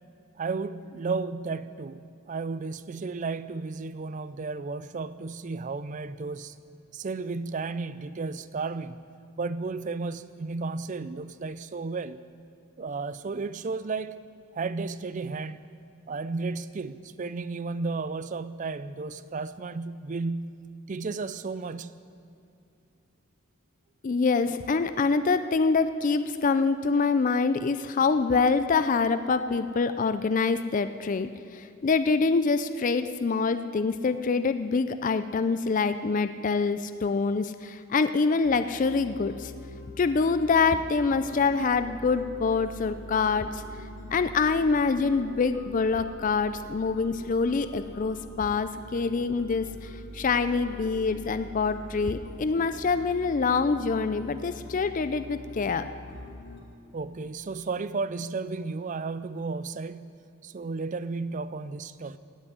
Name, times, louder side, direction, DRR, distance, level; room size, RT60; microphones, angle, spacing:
voice 1, 0.4-6.6 6.9-9.0 9.4-12.2 12.8-14.2 14.5-15.7 16.1-22.0 56.9-60.2 60.4-62.2, right 4 dB, 35° right, 14 dB, 0.4 m, -33 dB
voice 2, 24.0-39.5 40.0-43.6 44.1-55.9, left 4 dB, 40° left, 11 dB, 0.4 m, -25 dB
sound 1, 38.4-56.6, left 1 dB, 60° left, 2.3 m, -44 dB
16.5 x 6.2 x 9.5 m, 2.5 s
head